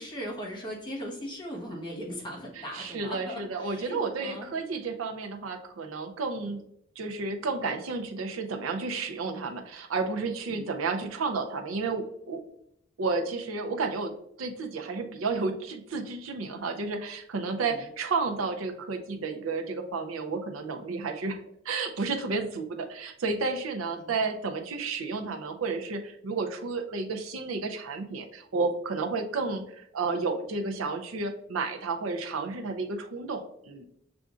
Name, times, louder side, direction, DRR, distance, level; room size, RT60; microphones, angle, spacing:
voice 1, 0.0-4.5 6.4-6.6 10.5-10.7 17.7-17.8 23.9-24.1, equal, 25° left, -4 dB, 1.1 m, -39 dB
voice 2, 2.6-6.6 7.0-12.4 13.0-21.4 21.6-33.9, right 4 dB, 90° right, 5 dB, 0.5 m, -32 dB
6.7 x 2.5 x 2.4 m, 0.75 s
head